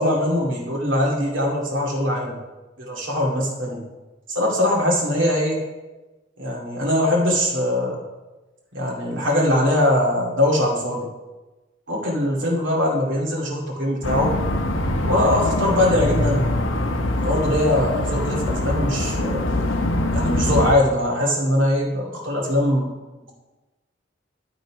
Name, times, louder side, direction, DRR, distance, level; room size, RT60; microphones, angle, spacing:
voice 1, 0.0-2.4 2.8-3.8 4.3-5.6 6.4-8.0 8.7-11.1 11.9-14.3 15.0-16.4 17.2-19.4 20.1-22.9, left 1 dB, 80° right, -2 dB, 2.3 m, -21 dB
sound 1, 14.0-20.7, left 1 dB, 90° left, 0.8 m, -23 dB
12.0 x 4.0 x 4.7 m, 1.1 s
head